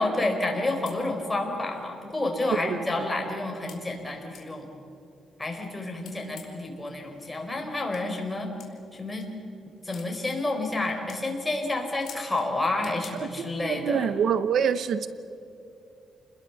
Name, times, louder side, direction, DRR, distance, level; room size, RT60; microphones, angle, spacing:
voice 1, 0.0-4.7 5.4-8.5 8.9-9.3 9.8-14.1, left 2 dB, 10° left, 2 dB, 4.2 m, -29 dB
sound 1, 0.5-0.6 0.9-1.0 1.8-1.9 2.4-2.5 3.7-3.8 4.3-4.5 6.0-6.7 7.9-8.0 8.6-8.7 9.9-10.1 10.6-10.8 11.1-11.2 12.0-12.5 12.8-13.1, left 8 dB, 65° left, 4.7 m, -46 dB
voice 2, 2.5-3.0 13.2-15.1, right 7 dB, 65° right, 14 dB, 0.7 m, -26 dB
29.0 x 21.5 x 7.0 m, 2.6 s
cardioid pair, 130°, 0 cm